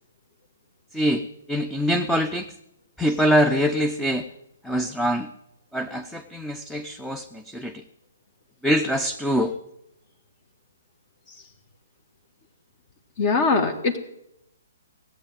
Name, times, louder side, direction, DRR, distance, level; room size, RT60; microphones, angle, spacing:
voice 1, 0.9-2.5 3.0-4.3 4.6-5.3 5.7-7.8 8.6-9.5, equal, 5° left, 6 dB, 0.6 m, -24 dB
voice 2, 13.2-14.0, left 4 dB, 40° left, 4 dB, 1.4 m, -21 dB
16.5 x 8.1 x 9.0 m, 0.85 s
figure-of-eight pair, 130°, 0 cm